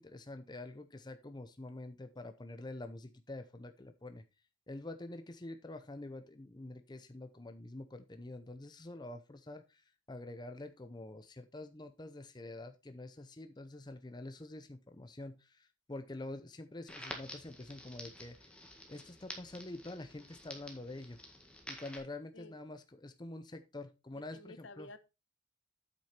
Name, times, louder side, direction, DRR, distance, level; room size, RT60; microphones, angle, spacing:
voice 1, 0.0-4.2 4.7-18.5 18.9-21.2 21.7-24.9, left 2 dB, 20° left, 8 dB, 0.6 m, -47 dB
Crackle, 16.9-22.0, left 1 dB, 5° left, 1.7 m, -49 dB
voice 2, 24.1-25.0, left 2 dB, 65° left, 13 dB, 1.0 m, -52 dB
8.5 x 6.4 x 4.4 m, 0.27 s
head